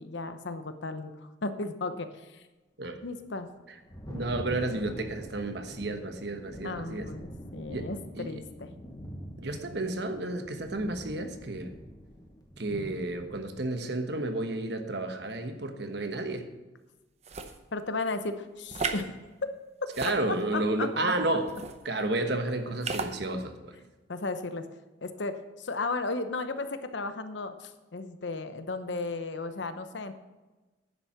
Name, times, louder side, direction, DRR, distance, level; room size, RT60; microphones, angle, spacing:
voice 1, 0.0-2.4 3.0-3.5 6.6-8.7 17.7-19.2 20.5-21.0 24.1-24.6 25.0-30.1, left 3 dB, 70° left, 9 dB, 0.9 m, -35 dB
Thunder, 3.4-13.5, equal, 20° left, 1.1 m, -44 dB
voice 2, 4.1-7.1 7.7-7.9 8.2-8.4 9.4-11.7 12.6-16.5 20.0-21.5 21.8-23.8, right 2 dB, 60° right, 7 dB, 1.2 m, -31 dB
sound 1, 17.2-17.6 18.7-19.0 19.9-20.6 21.5-21.8 22.8-23.1, right 4 dB, 35° right, 0.7 m, -34 dB
10.0 x 7.4 x 5.9 m, 1.2 s
head